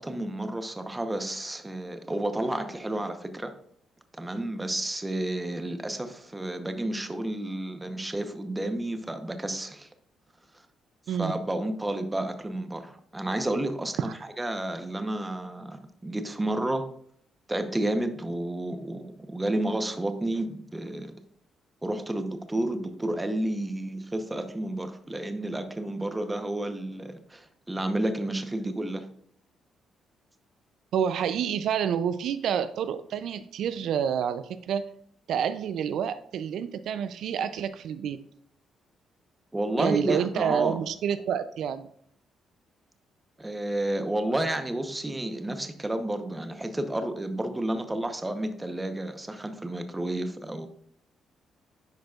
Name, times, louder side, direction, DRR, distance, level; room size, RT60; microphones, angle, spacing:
voice 1, 0.0-3.5 4.2-9.9 11.1-16.9 17.5-21.1 21.8-29.1 39.5-40.8 43.4-50.7, right 1 dB, 15° right, 8 dB, 0.8 m, -31 dB
voice 2, 30.9-34.9 35.3-38.2 39.8-41.9, right 8 dB, 75° right, 12 dB, 0.4 m, -28 dB
10.0 x 5.1 x 2.4 m, 0.65 s
cardioid pair, 90°, 0 cm